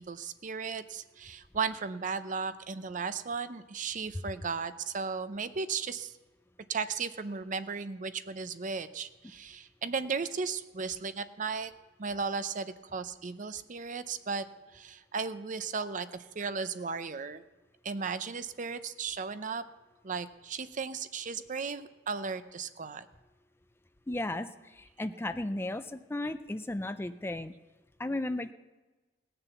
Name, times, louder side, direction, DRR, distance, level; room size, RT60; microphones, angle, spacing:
voice 1, 0.0-6.1 6.7-11.7 12.0-14.5 14.7-17.4 17.8-19.6 20.0-23.1, right 5 dB, 45° right, 12 dB, 0.6 m, -35 dB
voice 2, 24.1-27.5 28.0-28.5, left 1 dB, 15° left, 11 dB, 0.4 m, -35 dB
18.5 x 6.8 x 7.1 m, 1.2 s
head